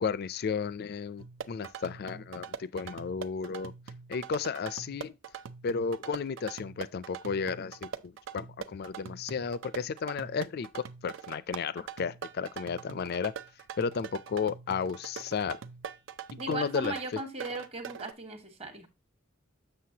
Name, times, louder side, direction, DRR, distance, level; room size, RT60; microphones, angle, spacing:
voice 1, 0.0-3.7 4.1-5.1 5.6-13.3 13.8-15.6 16.5-16.9, left 5 dB, 55° left, 0.4 m, -33 dB
sound 1, 1.2-18.1, right 7 dB, 70° right, 0.5 m, -43 dB
voice 2, 16.4-18.9, right 2 dB, 30° right, 1.3 m, -37 dB
7.6 x 6.5 x 2.8 m
head